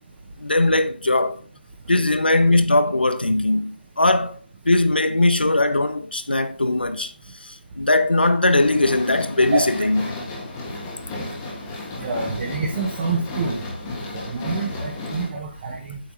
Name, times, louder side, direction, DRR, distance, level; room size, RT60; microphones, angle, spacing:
voice 1, 0.4-1.4 1.9-7.1 7.4-10.0, left 2 dB, 70° left, 1.2 m, -20 dB
sound 1, 8.5-15.3, left 2 dB, 15° left, 1.4 m, -33 dB
voice 2, 12.0-13.6 14.2-16.0, right 4 dB, 15° right, 1.2 m, -26 dB
8.6 x 7.6 x 4.0 m
figure-of-eight pair, 160°, 6 cm